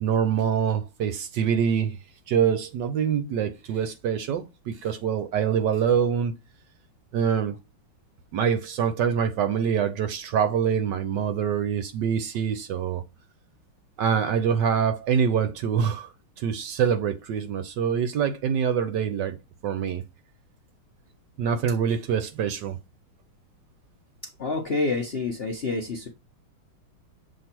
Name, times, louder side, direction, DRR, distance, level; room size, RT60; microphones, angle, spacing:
voice 1, 0.0-2.0 2.3-6.3 7.1-7.6 8.3-13.0 14.0-16.1 16.4-20.0 21.4-22.8, right 7 dB, 70° right, 1.1 m, -25 dB
voice 2, 24.2-26.1, left 3 dB, 60° left, 0.6 m, -28 dB
7.4 x 3.1 x 4.3 m
omnidirectional pair, 2.3 m